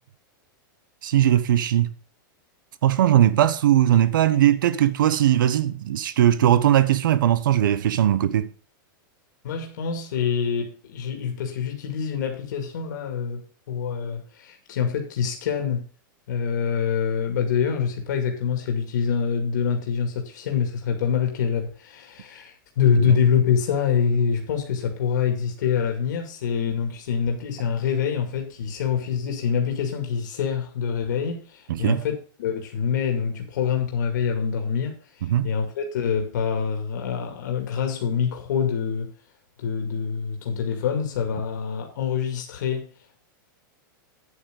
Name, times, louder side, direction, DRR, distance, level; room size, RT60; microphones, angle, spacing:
voice 1, 1.0-1.9 2.8-8.5 23.0-23.1 31.7-32.0 35.2-35.5, right 11 dB, 70° right, 0.9 m, -19 dB
voice 2, 9.4-15.8 16.3-39.1 39.6-42.9, left 7 dB, 60° left, 2.3 m, -25 dB
9.4 x 8.4 x 3.8 m
supercardioid pair, 180°, 11 cm